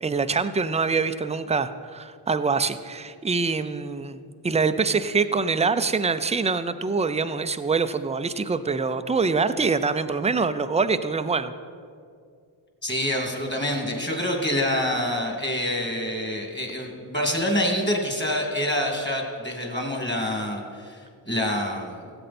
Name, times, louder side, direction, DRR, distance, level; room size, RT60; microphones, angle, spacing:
voice 1, 0.0-11.5, right 4 dB, 15° right, 11 dB, 0.5 m, -25 dB
voice 2, 12.8-22.1, left 1 dB, 20° left, 2 dB, 2.4 m, -27 dB
15.5 x 7.9 x 4.3 m, 2.3 s
cardioid pair, 55°, 50 cm